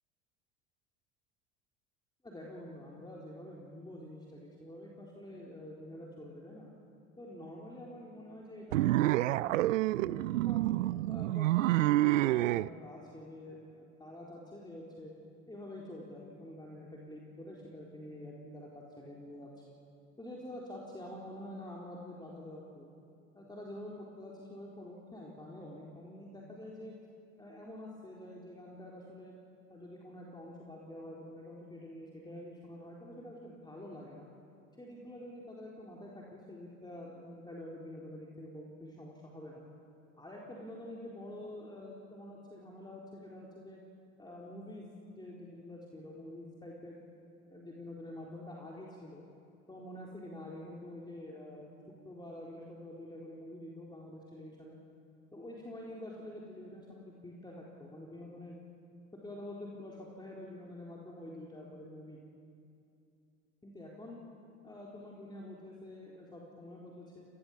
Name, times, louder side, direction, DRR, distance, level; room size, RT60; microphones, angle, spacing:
voice 1, 2.2-6.7 7.2-9.6 9.9-10.7 11.1-15.1 15.5-19.5 20.2-22.9 23.3-26.9 27.4-29.3 29.7-34.3 34.8-39.6 40.2-43.8 44.2-44.9 45.2-47.0 47.4-49.2 49.7-51.7 52.0-54.8 55.3-58.6 59.2-62.2 63.6-64.2 64.6-67.3, left 1 dB, 10° left, -4 dB, 4.0 m, -47 dB
sound 1, 8.7-12.7, right 16 dB, 80° right, 0.5 m, -28 dB
28.5 x 20.0 x 7.3 m, 2.5 s
hypercardioid pair, 70°, 38 cm